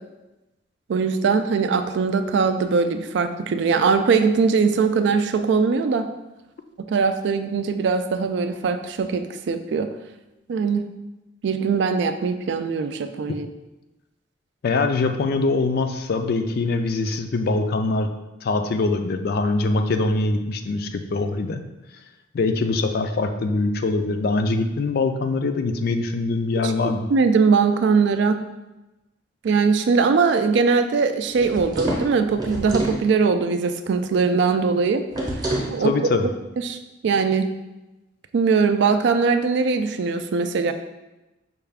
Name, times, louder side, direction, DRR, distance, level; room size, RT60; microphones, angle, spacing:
voice 1, 0.9-6.1 6.9-9.9 10.5-10.8 11.4-13.5 26.6-26.7 27.1-28.4 29.4-35.0 35.7-35.9 36.6-36.8 37.0-37.5 38.3-40.7, right 5 dB, 65° right, 9 dB, 0.3 m, -21 dB
voice 2, 14.6-18.1 18.4-21.6 22.3-27.1 35.8-36.3, left 3 dB, 55° left, 7 dB, 0.3 m, -23 dB
sound 1, 31.3-33.0 35.1-35.8, right 1 dB, 20° right, 0.8 m, -27 dB
5.6 x 2.3 x 3.4 m, 1.0 s
head